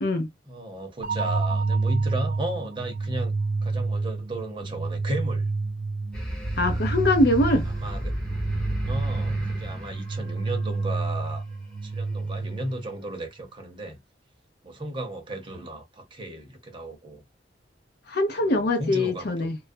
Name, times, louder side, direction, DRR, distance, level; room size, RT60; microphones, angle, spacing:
voice 1, 0.5-3.3 3.6-5.5 7.7-8.1 8.9-11.5 11.8-14.0 14.6-17.2 18.4-19.5, right 1 dB, 25° right, 0.7 m, -35 dB
sound 1, 1.0-13.0, right 3 dB, 45° right, 0.3 m, -29 dB
sound 2, 6.1-11.1, equal, 5° left, 0.7 m, -33 dB
voice 2, 6.6-7.7 18.1-19.6, left 1 dB, 55° left, 0.5 m, -23 dB
2.4 x 2.1 x 2.5 m
head